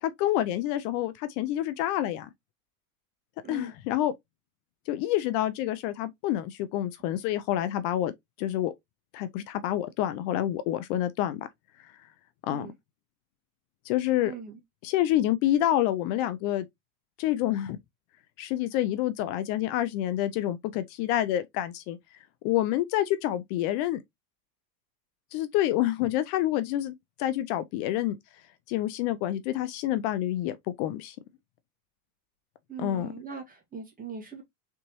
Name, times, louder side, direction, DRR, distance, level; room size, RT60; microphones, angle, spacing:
voice 1, 0.0-2.3 3.5-4.1 4.9-8.1 8.4-8.7 9.1-11.5 12.5-12.7 13.9-14.3 14.8-16.6 17.2-17.8 18.4-22.0 22.4-24.0 25.3-26.9 27.2-28.2 28.7-31.1 32.8-33.1, left 13 dB, 60° left, 0.7 m, -28 dB
voice 2, 14.2-14.6 32.7-34.4, right 6 dB, 15° right, 1.7 m, -40 dB
3.9 x 3.5 x 2.9 m
supercardioid pair, 120°, 50 cm